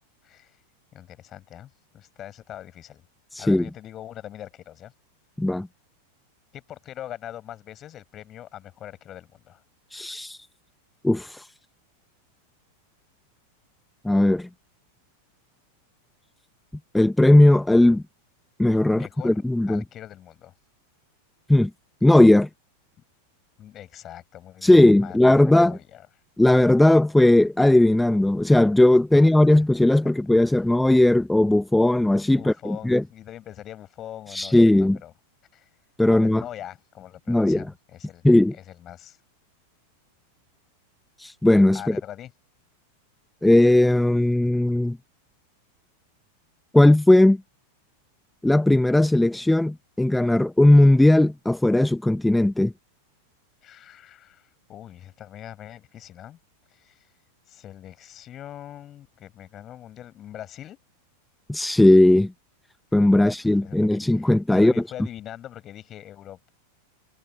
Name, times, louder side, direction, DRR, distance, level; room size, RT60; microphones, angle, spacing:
voice 1, 0.2-0.6 0.9-3.0 3.4-4.9 6.5-9.6 18.9-20.5 23.6-26.1 29.1-29.3 30.0-30.1 32.4-35.1 35.5-35.7 36.1-38.2 38.5-39.2 41.7-42.3 53.6-56.4 56.7-57.1 57.5-60.8 63.2-63.3 63.6-66.5, left 11 dB, 30° left, 7.0 m, -42 dB
voice 2, 3.3-3.7 5.4-5.7 9.9-10.4 11.0-11.5 14.0-14.5 16.9-18.0 18.6-19.8 21.5-21.7 22.0-22.5 24.6-25.8 26.4-33.0 34.3-35.0 36.0-36.4 37.3-37.7 38.2-38.5 41.2-42.0 43.4-45.0 46.7-47.4 48.4-52.7 61.5-62.3 62.9-64.7, left 1 dB, 5° left, 1.1 m, -17 dB
figure-of-eight pair, 90°, 0 cm